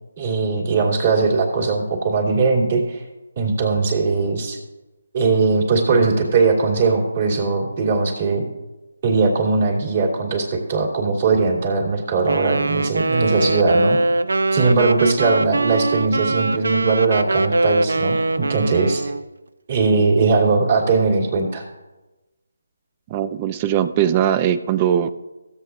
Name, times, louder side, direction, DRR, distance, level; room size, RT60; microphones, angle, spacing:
voice 1, 0.2-3.0 3.4-4.6 5.1-8.5 9.0-14.0 14.5-19.0 19.7-21.6, right 4 dB, 40° right, 0 dB, 2.8 m, -19 dB
Wind instrument woodwind instrument, 12.3-19.2, right 2 dB, 75° right, 0.5 m, -22 dB
voice 2, 23.1-25.1, right 10 dB, 25° right, 13 dB, 0.4 m, -20 dB
16.0 x 8.1 x 2.5 m, 1.1 s
figure-of-eight pair, 155°, 0 cm